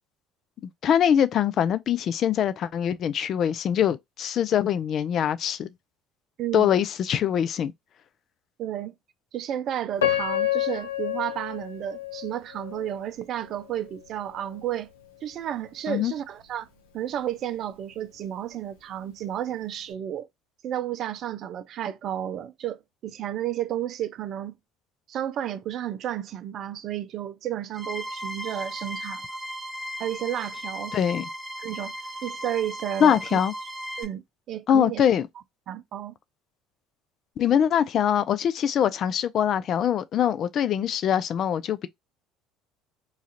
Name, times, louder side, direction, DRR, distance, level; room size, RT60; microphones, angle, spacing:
voice 1, 0.8-5.7 6.5-7.7 15.9-16.1 30.9-31.3 33.0-33.5 34.7-35.3 37.4-41.9, left 9 dB, 50° left, 0.4 m, -23 dB
voice 2, 6.4-6.7 8.6-8.9 9.3-14.9 15.2-16.7 16.9-20.3 20.6-24.5 25.1-29.2 30.0-31.0 31.6-31.9 32.2-33.4 34.0-34.2 34.5-35.1 35.7-36.1, right 11 dB, 55° right, 0.5 m, -32 dB
Piano, 10.0-13.0 13.6-13.7 14.3-14.6, left 11 dB, 90° left, 0.7 m, -28 dB
sound 1, 27.7-34.0, equal, 10° right, 1.1 m, -36 dB
3.1 x 2.4 x 2.8 m
hypercardioid pair, 70°, 0 cm